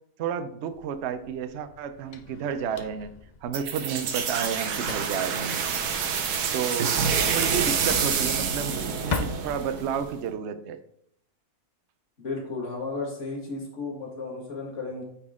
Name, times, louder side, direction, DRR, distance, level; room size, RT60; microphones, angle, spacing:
voice 1, 0.2-3.1 3.4-5.6 6.5-6.9 7.3-10.8, right 7 dB, 60° right, 10 dB, 0.7 m, -31 dB
Drawer open or close, 0.7-10.1, left 5 dB, 80° left, 0.4 m, -39 dB
sound 1, 3.5-10.1, right 6 dB, 85° right, 1.4 m, -27 dB
voice 2, 12.2-15.0, left 3 dB, 50° left, -1 dB, 2.2 m, -34 dB
8.8 x 4.3 x 3.7 m, 0.69 s
omnidirectional pair, 1.6 m